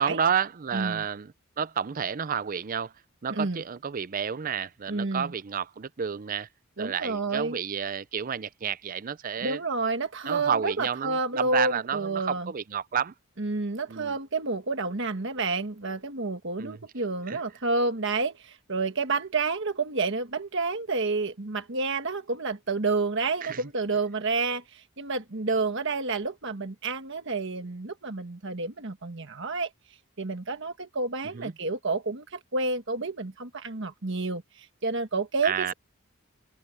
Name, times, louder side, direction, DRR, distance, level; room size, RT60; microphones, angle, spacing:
voice 1, 0.0-2.9 3.2-6.5 6.8-9.6 10.3-13.1 13.9-14.1 16.6-16.8 17.3-17.4 23.4-23.6 31.3-31.5 35.4-35.7, right 7 dB, 40° right, 0.5 m, -30 dB
voice 2, 0.7-1.0 3.3-3.6 4.9-5.3 6.8-7.6 9.4-12.5 13.4-29.7 30.2-35.7, right 3 dB, 55° right, 1.4 m, -29 dB
head